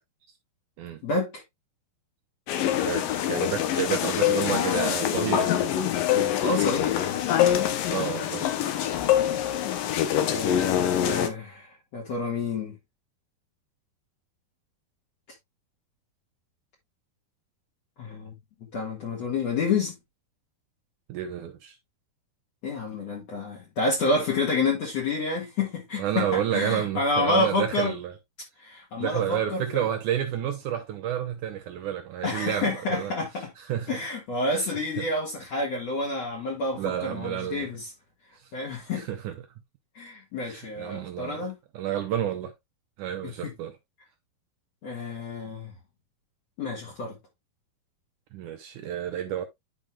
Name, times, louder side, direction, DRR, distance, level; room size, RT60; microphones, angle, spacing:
sound 1, 2.5-11.3, left 11 dB, 70° left, 2.4 m, -25 dB
voice 1, 2.8-5.5 7.9-8.5 21.1-21.8 26.0-28.1 29.0-33.1 33.6-34.0 34.5-35.1 36.7-37.7 38.3-38.5 38.9-39.3 40.4-41.4 41.7-42.5 43.0-43.8 48.3-49.4, right 10 dB, 80° right, 1.8 m, -30 dB
voice 2, 6.4-7.0 10.2-12.7 18.0-18.3 18.7-20.0 22.6-27.9 28.6-29.9 32.2-33.5 33.9-37.9 38.5-39.1 40.0-41.5 43.2-43.5 44.8-45.7 46.6-47.2, left 3 dB, 50° left, 2.4 m, -29 dB
11.0 x 5.2 x 2.3 m
omnidirectional pair, 4.5 m